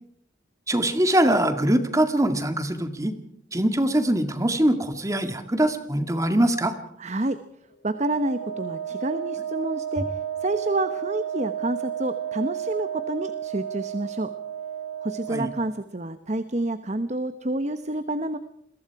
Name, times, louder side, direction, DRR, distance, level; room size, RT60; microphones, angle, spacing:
voice 1, 0.7-3.1 3.5-6.7 15.3-15.5, right 1 dB, 15° right, 8 dB, 2.0 m, -22 dB
voice 2, 7.0-7.4 7.8-14.3 15.0-18.4, right 2 dB, 40° right, 11 dB, 1.0 m, -28 dB
Wind instrument woodwind instrument, 7.9-15.7, right 9 dB, 90° left, 3.1 m, -32 dB
28.5 x 22.5 x 4.8 m, 0.71 s
head